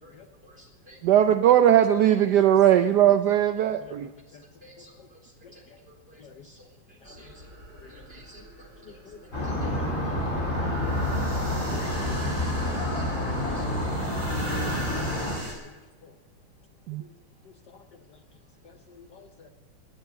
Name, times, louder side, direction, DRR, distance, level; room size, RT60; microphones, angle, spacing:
voice 1, 0.4-1.0 4.6-6.7 7.0-7.3 7.9-9.0 9.6-9.7 10.1-10.2 11.4-11.8 12.7-12.8 13.1-13.2 13.6-13.7, equal, 25° right, -1 dB, 4.2 m, -54 dB
voice 2, 1.0-4.1 16.9-17.0, right 11 dB, 75° right, 9 dB, 0.9 m, -19 dB
sound 1, 7.0-15.5, right 1 dB, 50° right, 6.3 m, -41 dB
sound 2, 9.3-15.4, left 1 dB, 35° left, 4.4 m, -28 dB
voice 3, 18.6-19.5, left 7 dB, 60° left, 6 dB, 1.3 m, -49 dB
18.5 x 11.0 x 6.9 m, 1.2 s
omnidirectional pair, 2.4 m